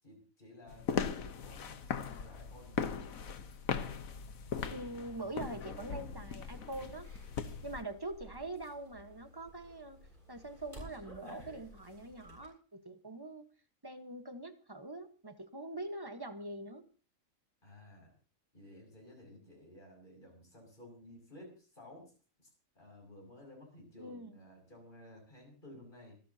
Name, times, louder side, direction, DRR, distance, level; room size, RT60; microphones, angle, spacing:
voice 1, 0.0-2.9 17.6-18.1 18.5-22.1 22.4-22.5 22.7-26.2, left 1 dB, 35° left, 0 dB, 6.9 m, -55 dB
sound 1, 0.7-7.8, left 6 dB, 80° left, 1.5 m, -39 dB
voice 2, 4.7-7.1 7.6-10.0 10.3-13.4 13.8-16.8 24.0-24.3, right 2 dB, 15° right, 7 dB, 1.3 m, -44 dB
sound 2, 6.5-12.5, equal, 35° right, 7.5 m, -54 dB
27.5 x 12.5 x 2.9 m, 0.36 s
omnidirectional pair, 1.4 m